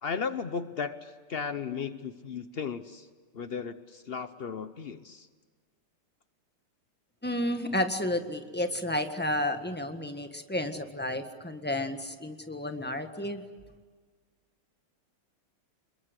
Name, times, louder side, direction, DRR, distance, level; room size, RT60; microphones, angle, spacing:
voice 1, 0.0-3.1 3.3-5.3, left 6 dB, 85° left, 11 dB, 0.5 m, -35 dB
voice 2, 7.2-13.4, left 1 dB, 5° left, 7 dB, 1.3 m, -31 dB
28.5 x 22.0 x 8.2 m, 1.5 s
omnidirectional pair, 2.3 m